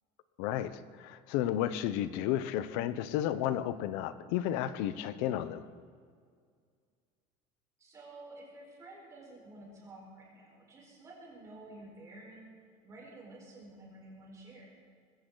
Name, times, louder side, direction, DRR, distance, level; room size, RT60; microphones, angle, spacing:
voice 1, 0.4-5.7, left 11 dB, 75° left, 13 dB, 0.8 m, -32 dB
voice 2, 7.8-12.5 12.8-14.7, right 2 dB, 20° right, -3 dB, 4.9 m, -51 dB
20.5 x 16.0 x 4.0 m, 2.1 s
cardioid pair, 170°, 14 cm